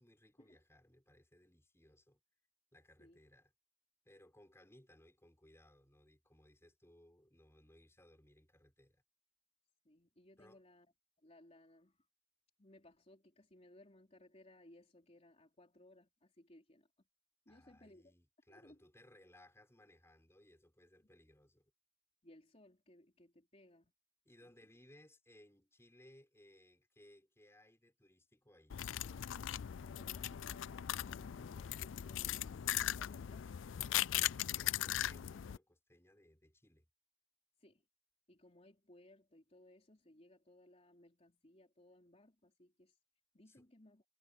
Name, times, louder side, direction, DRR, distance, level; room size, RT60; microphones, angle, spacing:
voice 1, 0.0-2.2 2.7-3.5 4.0-9.0 10.4-10.6 17.5-21.7 24.2-28.8 33.8-36.9 43.5-43.7, left 1 dB, 15° left, 4.8 m, -64 dB
voice 2, 9.8-10.9 11.2-12.1 12.6-16.9 17.5-18.2 18.5-18.8 22.2-23.9 24.4-24.5 29.7-33.4 37.6-37.8 38.3-43.0 43.3-44.0, left 1 dB, 35° left, 3.8 m, -63 dB
sound 1, 28.7-35.6, left 12 dB, 70° left, 0.4 m, -39 dB
head